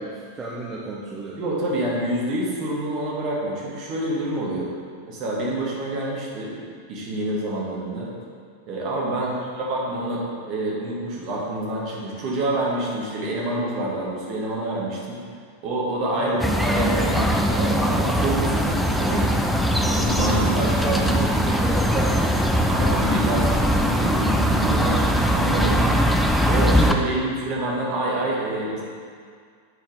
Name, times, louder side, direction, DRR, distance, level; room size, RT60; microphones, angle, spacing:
voice 1, 0.0-1.4 9.2-9.4 16.1-16.4 20.3-22.4, right 3 dB, 20° right, -5 dB, 0.8 m, -32 dB
voice 2, 1.4-4.7 5.1-6.6 6.9-8.1 8.7-15.2 15.6-19.3 19.8-21.3 22.7-26.0 26.4-28.8, right 1 dB, 40° right, -4 dB, 1.7 m, -27 dB
sound 1, 16.4-26.9, equal, ahead, 0.5 m, -21 dB
9.5 x 4.4 x 3.6 m, 2.1 s
figure-of-eight pair, 90°, 0 cm